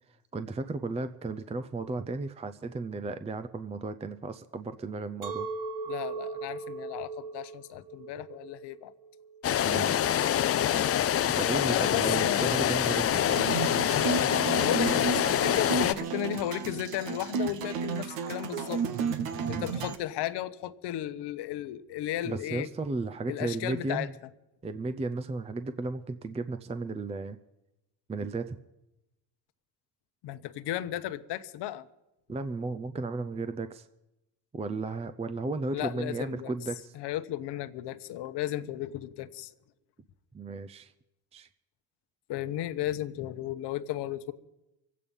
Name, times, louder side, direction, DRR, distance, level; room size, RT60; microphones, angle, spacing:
voice 1, 0.3-5.5 9.7-10.0 11.3-13.4 19.4-19.7 22.2-24.1 24.6-27.4 28.1-28.6 32.3-33.9 34.5-36.9 40.3-40.9 41.3-41.5, right 3 dB, 15° right, 0.5 m, -34 dB
Chink clink, 5.2-10.4, right 4 dB, 45° right, 2.1 m, -39 dB
voice 2, 5.9-8.9 10.2-10.6 11.6-12.5 14.6-18.9 19.5-22.7 23.3-24.1 30.2-31.9 35.7-36.5 36.9-39.5 42.3-44.3, left 12 dB, 70° left, 1.0 m, -35 dB
sound 1, 9.4-15.9, left 10 dB, 35° left, 0.5 m, -26 dB
sound 2, 13.3-20.0, right 6 dB, 80° right, 1.2 m, -32 dB
24.0 x 8.6 x 5.4 m
supercardioid pair, 85°, 43 cm